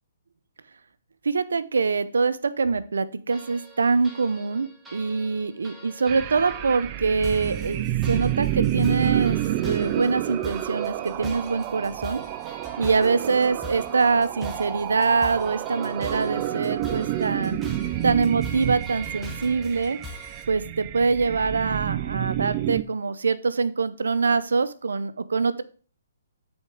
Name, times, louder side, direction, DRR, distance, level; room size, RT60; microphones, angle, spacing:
voice 1, 1.2-12.2 12.8-17.6 18.0-20.0 20.5-25.6, right 4 dB, 85° right, 13 dB, 0.6 m, -24 dB
sound 1, 3.3-20.4, equal, 5° right, 1.1 m, -43 dB
sound 2, 6.1-22.8, right 13 dB, 30° right, 0.4 m, -29 dB
8.9 x 4.4 x 3.7 m, 0.40 s
hypercardioid pair, 150°, 0 cm